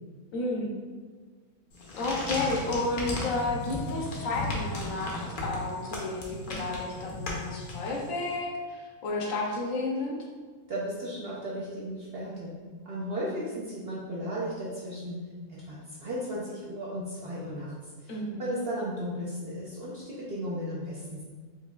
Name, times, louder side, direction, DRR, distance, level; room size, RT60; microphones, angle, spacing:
voice 1, 0.3-0.7 2.0-10.2 18.1-18.5, left 2 dB, 70° left, -1 dB, 1.0 m, -32 dB
sound 1, 1.7-8.3, left 1 dB, 55° left, 0.6 m, -35 dB
voice 2, 10.7-12.5 12.8-15.2 15.5-21.2, equal, 60° right, -6 dB, 0.7 m, -35 dB
4.6 x 2.6 x 2.2 m, 1.5 s
omnidirectional pair, 1.6 m